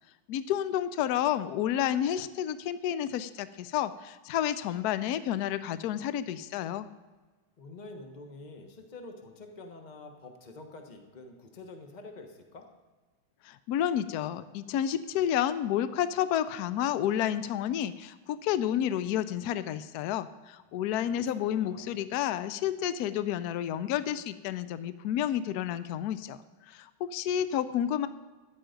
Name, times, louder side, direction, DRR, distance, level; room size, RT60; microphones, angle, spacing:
voice 1, 0.3-6.9 13.4-26.4 26.7-28.1, left 10 dB, 80° left, 14 dB, 0.8 m, -30 dB
voice 2, 7.6-12.7 20.7-22.0, left 2 dB, 25° left, 4 dB, 1.1 m, -47 dB
13.5 x 10.5 x 5.2 m, 1.3 s
omnidirectional pair, 2.2 m